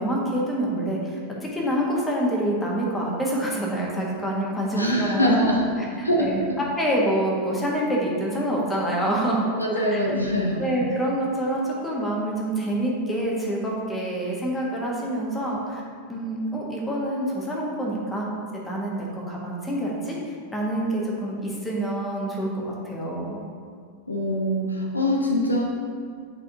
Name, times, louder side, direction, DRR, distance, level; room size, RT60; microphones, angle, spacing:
voice 1, 0.0-5.6 6.0-9.5 9.9-10.0 10.6-15.8 16.1-18.4 18.6-20.2 20.5-23.4, right 1 dB, 10° left, -3 dB, 1.4 m, -26 dB
voice 2, 4.8-5.6 5.9-6.5 9.6-10.7 24.1-25.6, equal, 85° left, -1 dB, 0.7 m, -23 dB
9.4 x 4.0 x 2.9 m, 2.2 s
figure-of-eight pair, 90°, 0 cm